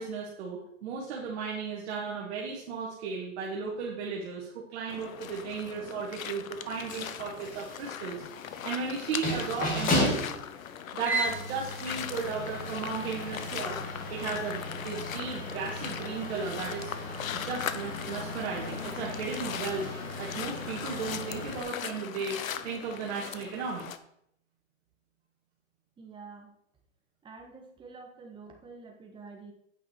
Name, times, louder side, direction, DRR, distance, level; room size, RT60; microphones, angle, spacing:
voice 1, 0.0-8.2 8.6-10.2 10.9-13.8 14.1-16.9 17.3-19.9 20.2-23.9, right 5 dB, 50° right, -3 dB, 1.9 m, -35 dB
sound 1, 4.9-24.0, left 9 dB, 85° left, 0.8 m, -40 dB
sound 2, 6.7-21.6, left 1 dB, 20° left, 1.9 m, -35 dB
voice 2, 26.0-26.5 27.2-29.5, right 4 dB, 10° right, 1 dB, 1.5 m, -48 dB
8.6 x 5.8 x 4.6 m, 0.73 s
hypercardioid pair, 140°, 40 cm